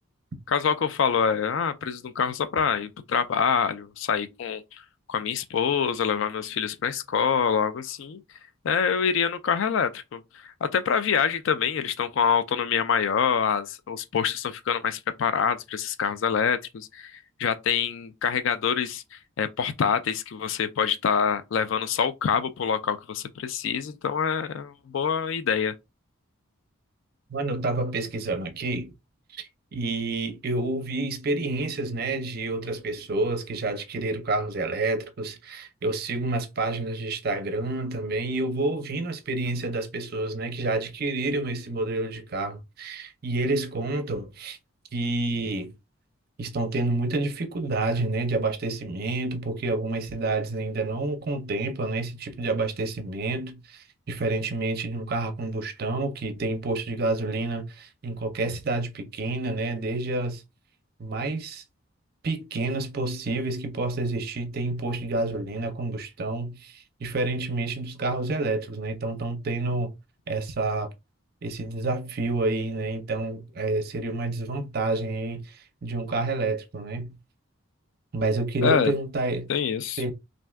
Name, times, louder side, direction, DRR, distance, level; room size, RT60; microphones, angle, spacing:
voice 1, 0.5-4.8 5.1-8.2 8.6-25.7 78.6-78.9 79.5-80.0, left 7 dB, 65° left, 0.3 m, -26 dB
voice 2, 27.3-28.9 29.3-44.6 44.9-45.7 46.4-60.4 61.0-61.6 62.2-69.9 70.3-70.9 71.4-77.2 78.1-79.5 80.0-80.1, right 2 dB, 45° right, 0.5 m, -29 dB
2.5 x 2.2 x 3.3 m
head